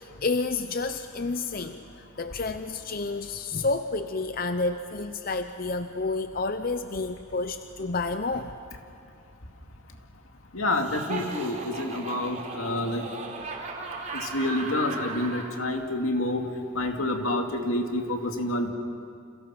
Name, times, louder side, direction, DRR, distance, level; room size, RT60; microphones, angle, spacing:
voice 1, 0.0-1.8 2.2-8.6, left 3 dB, 45° left, 9 dB, 0.7 m, -30 dB
voice 2, 10.5-13.0 14.1-16.4 16.7-18.7, left 1 dB, 80° left, 4 dB, 2.4 m, -28 dB
Laughter, 10.7-15.5, right 3 dB, 35° right, 3.4 m, -37 dB
30.0 x 27.0 x 5.9 m, 2.4 s
head